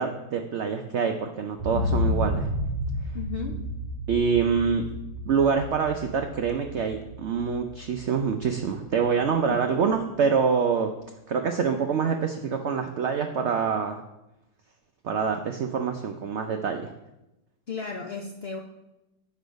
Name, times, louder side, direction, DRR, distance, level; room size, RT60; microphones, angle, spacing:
voice 1, 0.0-2.5 4.1-4.9 5.3-10.9 11.3-14.0 15.0-16.9, right 6 dB, 80° right, 5 dB, 0.6 m, -26 dB
sound 1, 1.6-9.5 9.9-10.0, left 1 dB, 10° right, 3.2 m, -31 dB
voice 2, 3.1-3.6 9.5-9.8 17.7-18.6, left 4 dB, 60° left, 2 dB, 0.6 m, -34 dB
8.3 x 5.4 x 5.1 m, 0.94 s
omnidirectional pair, 1.9 m